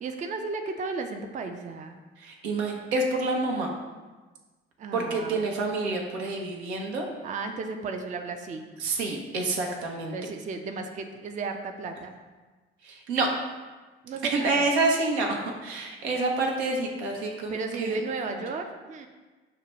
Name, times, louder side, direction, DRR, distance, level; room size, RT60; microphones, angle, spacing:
voice 1, 0.0-2.0 4.8-5.4 7.2-8.7 10.1-12.1 14.0-14.7 17.5-19.1, right 4 dB, 25° right, 5 dB, 0.4 m, -34 dB
voice 2, 2.2-3.7 4.9-7.1 8.8-10.1 12.8-13.3 14.3-15.3 15.6-18.0, right 3 dB, 80° right, 1 dB, 0.6 m, -28 dB
6.4 x 2.2 x 2.9 m, 1.3 s
figure-of-eight pair, 50°, 33 cm